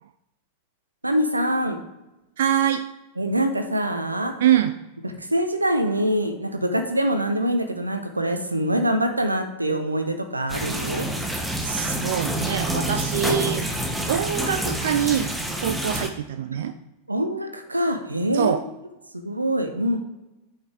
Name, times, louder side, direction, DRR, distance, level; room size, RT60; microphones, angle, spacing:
voice 1, 1.0-1.8 3.2-4.3 5.0-11.1 16.5-16.6 17.1-18.6 19.1-20.0, equal, 85° right, 7 dB, 0.8 m, -24 dB
voice 2, 2.4-2.8 4.4-4.7 11.6-13.6 14.1-15.3 15.6-16.7 18.3-18.6, right 10 dB, 60° right, 10 dB, 0.4 m, -24 dB
sound 1, 10.5-16.1, right 1 dB, 5° right, 1.0 m, -27 dB
8.7 x 5.7 x 3.4 m, 0.99 s
figure-of-eight pair, 90°, 0 cm